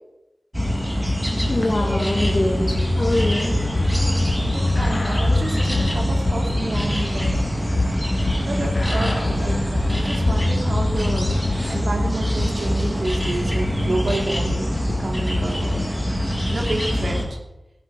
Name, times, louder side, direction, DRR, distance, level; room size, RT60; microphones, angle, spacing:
sound 1, 0.5-17.2, left 1 dB, 5° right, 3.1 m, -23 dB
voice 1, 1.5-3.6, left 1 dB, 35° left, 0 dB, 2.2 m, -23 dB
sound 2, 3.7-11.8, left 2 dB, 70° left, 1.9 m, -26 dB
voice 2, 3.9-7.4 8.4-11.3 11.7-15.8 16.5-17.4, right 2 dB, 70° right, 1 dB, 2.8 m, -30 dB
17.0 x 11.0 x 4.7 m, 0.97 s
wide cardioid pair, 80°, 0 cm